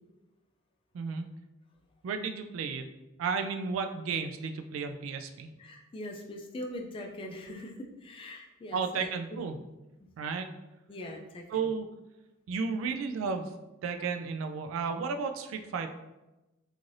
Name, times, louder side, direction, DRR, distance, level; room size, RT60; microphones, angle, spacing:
voice 1, 0.9-1.3 2.0-2.9 3.2-5.5 8.7-9.6 10.2-10.5 11.5-11.9 12.5-13.5 13.8-15.9, right 5 dB, 80° right, 7 dB, 0.3 m, -33 dB
voice 2, 5.6-7.7 8.0-9.4 10.9-11.7, left 1 dB, 25° left, 1 dB, 0.3 m, -42 dB
3.1 x 2.4 x 2.6 m, 1.0 s
head